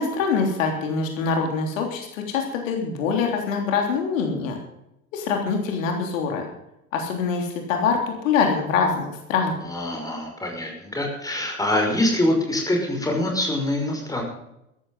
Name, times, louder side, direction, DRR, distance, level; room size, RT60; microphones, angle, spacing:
voice 1, 0.0-4.6 5.1-6.5 6.9-9.5, left 5 dB, 60° left, 3 dB, 3.5 m, -24 dB
voice 2, 9.6-14.2, left 1 dB, 10° left, 1 dB, 5.8 m, -24 dB
14.5 x 14.0 x 5.6 m, 0.83 s
figure-of-eight pair, 85°, 44 cm